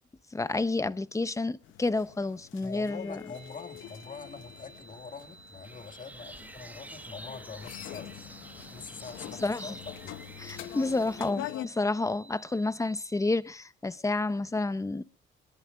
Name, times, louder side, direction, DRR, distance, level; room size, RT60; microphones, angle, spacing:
voice 1, 0.3-3.2 9.4-9.7 10.4-15.0, left 2 dB, 15° left, 0.8 m, -30 dB
sound 1, 1.6-11.7, left 13 dB, 85° left, 0.8 m, -44 dB
voice 2, 2.6-8.3 8.7-10.2, left 5 dB, 40° left, 2.1 m, -44 dB
sound 2, 3.3-13.3, right 5 dB, 90° right, 5.1 m, -54 dB
sound 3, 5.6-11.3, right 1 dB, 10° right, 1.2 m, -48 dB
23.5 x 21.5 x 2.4 m
cardioid pair, 90°, 20 cm